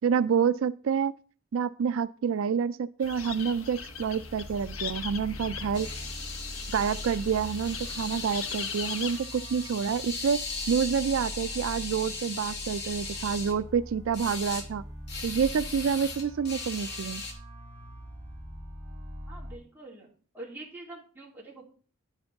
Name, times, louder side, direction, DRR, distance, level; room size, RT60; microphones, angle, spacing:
voice 1, 0.0-1.1 1.5-5.9 6.7-10.4 10.7-14.8 15.2-17.2, right 7 dB, 75° right, 14 dB, 0.4 m, -28 dB
sound 1, 3.0-9.2, left 7 dB, 80° left, 1.0 m, -40 dB
sound 2, 3.7-19.5, equal, 30° right, 3.9 m, -43 dB
sound 3, 5.7-13.5 14.1-14.6 15.1-17.3, left 4 dB, 50° left, 1.9 m, -38 dB
voice 2, 19.3-20.1 20.3-21.7, right 2 dB, 10° right, -4 dB, 3.2 m, -45 dB
10.5 x 9.0 x 3.5 m, 0.41 s
head